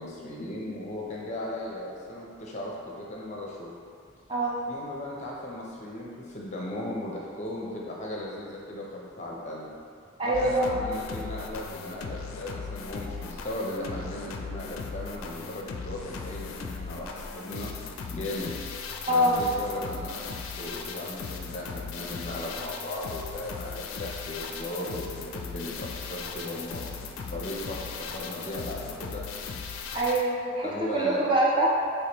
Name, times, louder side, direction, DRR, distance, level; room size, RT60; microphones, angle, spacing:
voice 1, 0.0-3.7 4.7-9.7 10.2-18.6 19.1-26.8 27.3-29.2 30.6-31.2, left 1 dB, 35° left, -3 dB, 0.6 m, -37 dB
voice 2, 10.2-10.8 19.0-19.4 29.9-31.7, right 1 dB, 25° right, -5 dB, 0.5 m, -24 dB
sound 1, 10.3-30.2, left 5 dB, 90° left, 0.4 m, -38 dB
4.8 x 3.2 x 2.9 m, 2.3 s
head